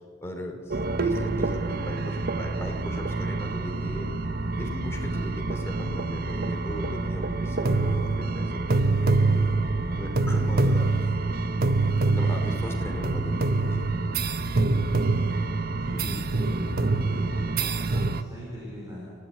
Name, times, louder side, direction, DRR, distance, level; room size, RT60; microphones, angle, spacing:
voice 1, 0.2-4.1 4.5-9.5 9.9-10.9 12.0-13.9, left 1 dB, 15° left, 2 dB, 2.9 m, -37 dB
sound 1, 0.7-18.2, right 3 dB, 50° right, 1.0 m, -26 dB
voice 2, 15.8-19.1, right 1 dB, 15° right, -4 dB, 5.0 m, -39 dB
29.5 x 15.5 x 9.5 m, 2.3 s
head